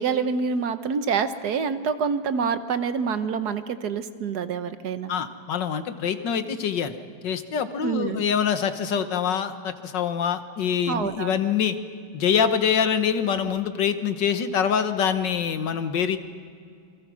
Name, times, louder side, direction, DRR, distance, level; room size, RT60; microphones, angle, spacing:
voice 1, 0.0-5.1 7.8-8.2 10.9-11.3, right 6 dB, 65° right, 11 dB, 1.5 m, -26 dB
voice 2, 5.1-7.0 7.2-11.8 12.1-16.2, left 7 dB, 85° left, 9 dB, 1.9 m, -25 dB
28.0 x 22.5 x 6.3 m, 2.3 s
omnidirectional pair, 1.9 m